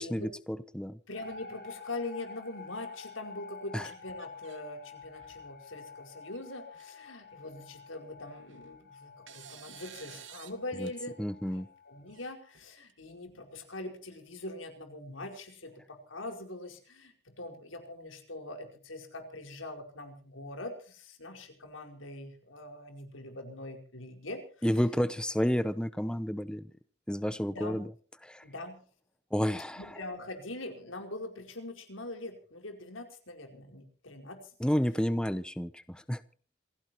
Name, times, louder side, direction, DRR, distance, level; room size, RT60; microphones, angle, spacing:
voice 1, 0.0-1.0 3.7-3.9 10.8-10.9 11.2-11.7 24.6-26.6 27.1-27.9 28.2-28.4 29.3-29.9 34.6-36.2, equal, 5° left, 14 dB, 0.7 m, -30 dB
voice 2, 1.1-11.2 11.5-24.4 27.5-27.9 28.4-28.8 29.7-34.4, left 2 dB, 85° left, 5 dB, 4.9 m, -43 dB
sound 1, 1.1-12.3, left 5 dB, 50° left, 7.2 m, -49 dB
sound 2, 3.9-4.6 5.0-5.5 6.3-6.4 6.7-6.8 8.2-8.7 9.3-10.6 10.9-11.0 12.1-12.9, right 9 dB, 70° right, 2.4 m, -52 dB
27.5 x 16.5 x 3.0 m, 0.43 s
head